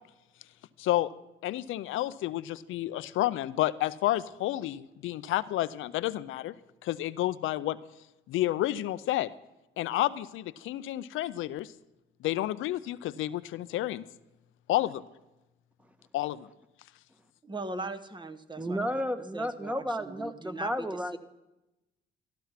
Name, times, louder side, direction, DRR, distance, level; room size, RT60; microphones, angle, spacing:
voice 1, 0.8-1.1 1.4-6.5 6.8-7.8 8.3-9.3 9.8-11.7 12.2-14.0 14.7-15.0 16.1-16.5, left 15 dB, 85° left, 14 dB, 0.5 m, -30 dB
voice 2, 17.4-18.8 19.3-21.2, right 2 dB, 25° right, 11 dB, 1.0 m, -39 dB
voice 3, 18.6-21.2, equal, 5° right, 8 dB, 1.3 m, -32 dB
14.0 x 11.5 x 5.8 m, 0.97 s
cardioid pair, 90°, 20 cm